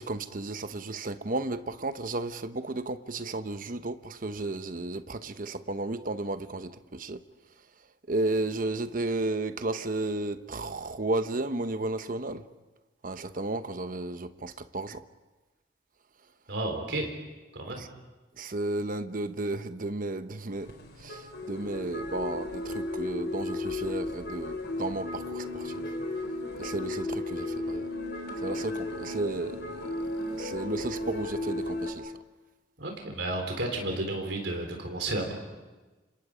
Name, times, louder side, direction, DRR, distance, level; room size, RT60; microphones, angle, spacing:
voice 1, 0.0-7.2 8.1-12.4 13.0-15.0 17.8-17.9 18.4-26.0 26.6-27.9 28.4-32.1, right 2 dB, 50° right, 0.9 m, -33 dB
voice 2, 16.5-17.1 17.5-17.8 32.8-35.3, right 2 dB, 80° right, 3.9 m, -32 dB
sound 1, 20.5-31.9, left 2 dB, 60° left, 4.1 m, -34 dB
29.5 x 27.0 x 5.1 m
head